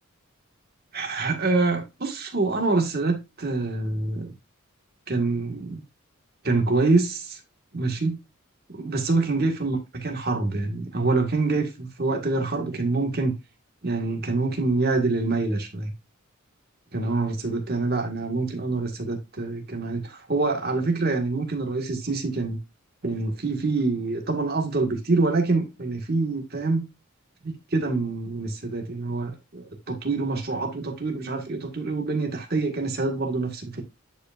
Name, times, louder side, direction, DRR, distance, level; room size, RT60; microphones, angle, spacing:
voice 1, 0.9-4.3 5.1-5.8 6.4-7.4 7.7-8.2 8.7-13.3 13.8-15.9 16.9-22.6 23.0-26.8 27.4-33.8, right 3 dB, 45° right, 1.7 m, -26 dB
9.9 x 5.1 x 2.5 m
head